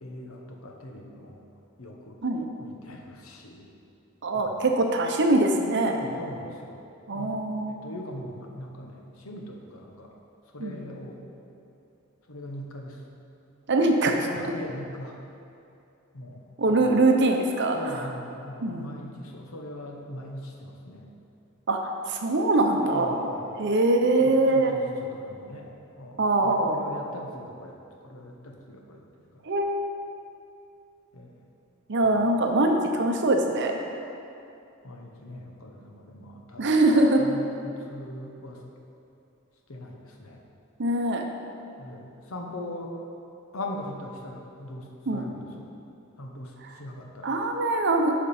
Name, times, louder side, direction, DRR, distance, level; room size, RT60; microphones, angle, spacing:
voice 1, 0.0-1.4 1.8-2.2 2.6-3.7 4.3-4.6 5.9-6.8 7.1-10.1 10.5-11.2 12.3-13.0 14.2-15.2 16.1-17.0 17.7-21.1 22.8-23.7 24.2-27.8 28.0-29.4 31.1-31.4 32.0-32.3 34.8-36.7 37.2-38.6 39.7-40.4 41.8-42.9 43.5-45.7 46.2-47.3, left 1 dB, 70° left, 1 dB, 1.0 m, -41 dB
voice 2, 4.2-6.0 7.1-7.9 10.6-10.9 13.7-14.2 16.6-18.1 18.6-18.9 21.7-23.3 23.6-24.7 26.2-26.8 29.4-29.9 31.9-34.0 36.6-37.2 40.8-41.2 45.1-45.2 47.2-48.1, right 2 dB, 55° right, 3 dB, 0.8 m, -23 dB
10.0 x 5.1 x 4.3 m, 2.7 s
head